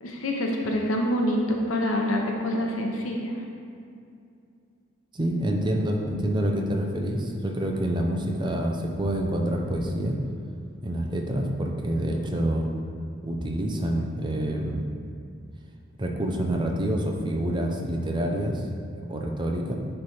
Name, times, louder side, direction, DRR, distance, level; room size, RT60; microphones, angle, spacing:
voice 1, 0.0-3.4, left 1 dB, 85° left, 1 dB, 0.8 m, -26 dB
voice 2, 5.1-10.2 10.8-12.7 13.2-14.8 16.0-18.7 19.1-19.7, right 1 dB, 20° right, 1 dB, 0.6 m, -27 dB
9.9 x 3.3 x 4.3 m, 2.4 s
head